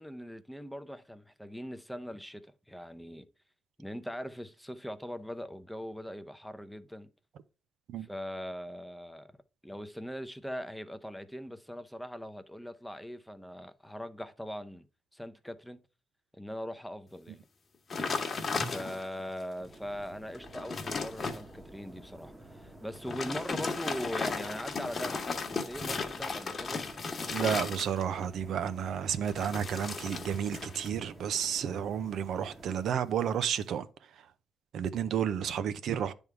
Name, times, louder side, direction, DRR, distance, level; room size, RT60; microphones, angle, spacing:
voice 1, 0.0-3.3 3.8-7.1 8.0-14.9 15.1-15.8 16.3-17.4 18.6-26.8, equal, ahead, 0.6 m, -41 dB
sound 1, 17.9-19.2 19.7-19.8 20.3-21.4 23.0-28.2 29.2-30.9 31.2-31.6, left 4 dB, 40° left, 1.2 m, -35 dB
sound 2, 19.6-32.9, right 1 dB, 20° right, 1.0 m, -51 dB
voice 2, 27.3-33.9 34.7-36.1, right 8 dB, 70° right, 0.5 m, -31 dB
9.5 x 3.6 x 4.6 m
cardioid pair, 90°, 0 cm